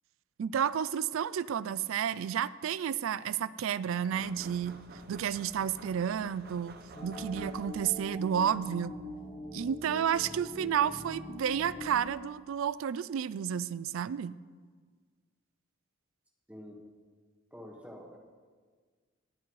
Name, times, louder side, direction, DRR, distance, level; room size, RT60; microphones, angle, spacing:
voice 1, 0.4-4.8 5.1-9.0 9.5-14.4, right 8 dB, 75° right, 17 dB, 0.3 m, -31 dB
sound 1, 4.1-8.0, right 2 dB, 45° right, 0.8 m, -51 dB
sound 2, 6.9-12.2, left 1 dB, 25° left, 1.1 m, -43 dB
voice 2, 17.5-18.2, equal, 5° right, 0 dB, 1.5 m, -47 dB
18.5 x 9.9 x 3.2 m, 1.6 s
head